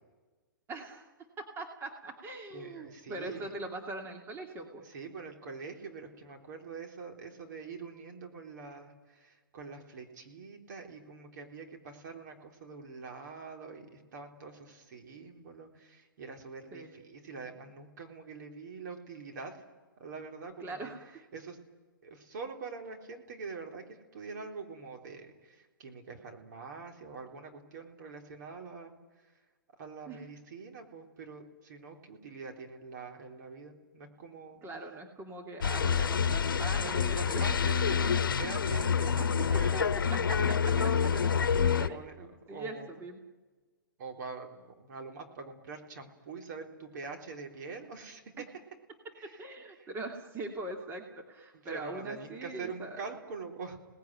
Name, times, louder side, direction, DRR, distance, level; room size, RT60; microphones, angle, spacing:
voice 1, 0.7-1.1 1.4-4.8 16.7-16.9 17.3-17.5 20.6-21.0 30.1-30.3 34.6-37.5 39.2-40.4 40.6-41.1 41.8-43.2 48.4-48.5 49.2-53.0, right 2 dB, 20° right, 2 dB, 2.6 m, -42 dB
voice 2, 2.5-3.5 4.8-19.6 20.0-20.9 21.3-21.6 22.0-28.9 29.2-29.3 29.8-34.6 35.8-35.9 36.8-41.3 41.9-42.9 44.0-48.2 49.2-49.4 49.8-49.9 51.5-53.8, right 4 dB, 55° right, 2 dB, 3.9 m, -44 dB
sound 1, 35.6-41.9, left 6 dB, 75° left, 1.0 m, -27 dB
28.5 x 19.0 x 9.2 m, 1.3 s
hypercardioid pair, 125°, 11 cm